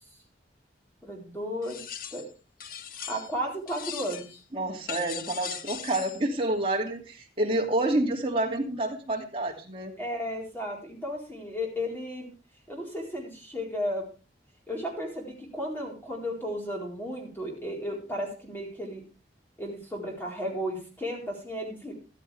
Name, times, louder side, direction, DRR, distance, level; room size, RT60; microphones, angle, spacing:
voice 1, 1.0-1.8 2.1-2.3 3.1-4.4 10.0-12.3 12.7-14.0 14.7-19.0 19.6-21.9, equal, 10° left, -1 dB, 4.2 m, -34 dB
sound 1, 1.6-2.3 2.6-3.4 3.7-4.4 4.9-6.2, left 8 dB, 50° left, 0.8 m, -39 dB
voice 2, 4.5-9.9, right 1 dB, 30° right, 0 dB, 2.6 m, -28 dB
14.0 x 12.5 x 3.4 m, 0.34 s
head